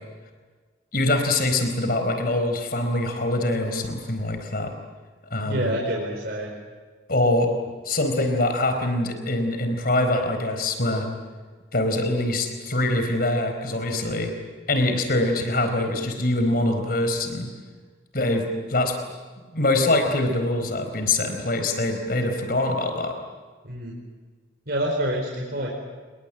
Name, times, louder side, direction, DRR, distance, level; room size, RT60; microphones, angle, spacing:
voice 1, 0.9-4.7 5.3-5.7 7.1-7.5 7.8-11.1 11.7-14.3 14.7-17.5 18.1-18.9 19.5-23.2, left 2 dB, 50° left, 6 dB, 4.4 m, -24 dB
voice 2, 5.4-6.5 23.6-23.9 24.7-25.7, right 1 dB, 55° right, -2 dB, 5.0 m, -27 dB
28.5 x 21.5 x 8.9 m, 1.4 s
head